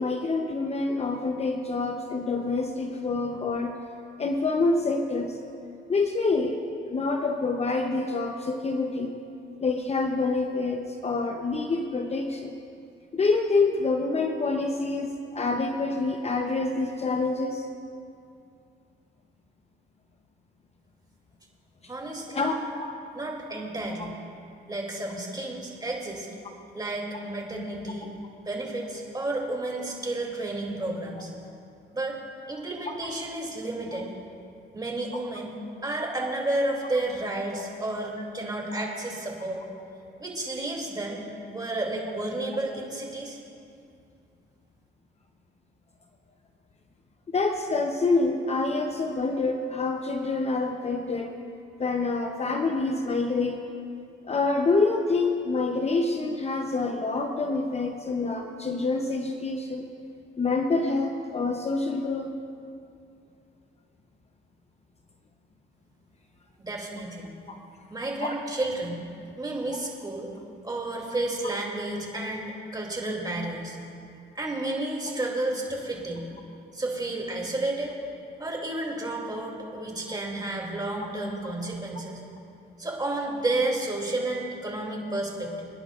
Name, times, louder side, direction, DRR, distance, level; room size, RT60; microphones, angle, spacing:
voice 1, 0.0-3.8 4.2-5.4 5.9-6.6 6.9-9.1 9.6-12.5 13.1-17.7 22.3-22.6 33.9-34.0 47.3-51.3 51.8-53.6 54.3-59.8 60.4-62.3 67.5-67.6 68.2-68.4 80.1-80.2, left 3 dB, 30° left, 4 dB, 0.8 m, -27 dB
voice 2, 21.9-22.5 23.1-24.2 24.7-26.3 26.7-28.1 28.4-31.3 31.9-32.2 32.5-34.1 34.7-35.5 35.8-39.6 40.2-41.2 41.5-43.4 66.6-67.3 67.9-69.0 69.4-70.3 70.6-73.8 74.3-76.3 76.7-78.0 78.4-82.2 82.8-85.7, right 2 dB, 20° right, -1 dB, 2.7 m, -31 dB
27.0 x 10.0 x 2.5 m, 2.5 s
cardioid pair, 90°, 20 cm